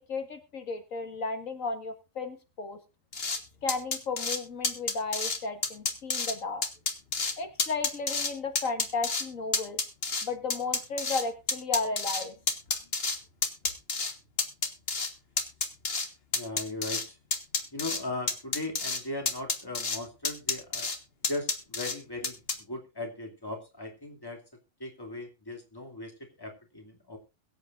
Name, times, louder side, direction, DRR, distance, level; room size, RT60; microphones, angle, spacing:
voice 1, 0.1-2.8 3.6-6.6 7.4-9.8 10.2-12.3, left 4 dB, 90° left, 7 dB, 2.3 m, -34 dB
sound 1, 3.1-3.4 3.7-4.4 4.6-5.4 5.6-6.3 6.6-7.3 7.6-8.3 8.6-9.2 9.5-11.2 11.5-13.2 13.4-14.1 14.4-15.1 15.4-16.1 16.3-17.0 17.3-18.0 18.3-19.0 19.3-20.0 20.2-21.0 21.2-21.9 22.2-22.5, left 4 dB, 50° left, 1.8 m, -29 dB
voice 2, 16.3-17.2 17.7-20.9 21.2-24.4 24.8-26.1 26.4-27.2, left 2 dB, 15° left, 2 dB, 2.7 m, -38 dB
22.5 x 8.1 x 2.5 m, 0.28 s
omnidirectional pair, 1.3 m